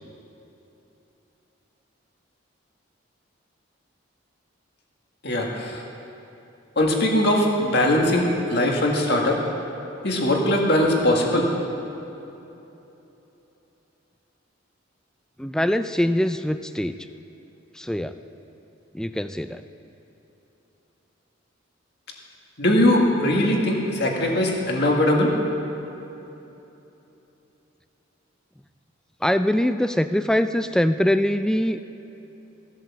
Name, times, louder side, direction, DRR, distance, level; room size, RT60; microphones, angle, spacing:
voice 1, 5.2-5.8 6.8-9.4 10.0-11.5 22.6-25.3, left 1 dB, 55° left, 0 dB, 1.9 m, -20 dB
voice 2, 15.4-17.0 17.8-18.1 18.9-19.6 29.2-31.8, left 1 dB, 5° left, 10 dB, 0.3 m, -23 dB
16.0 x 8.0 x 7.3 m, 3.0 s
head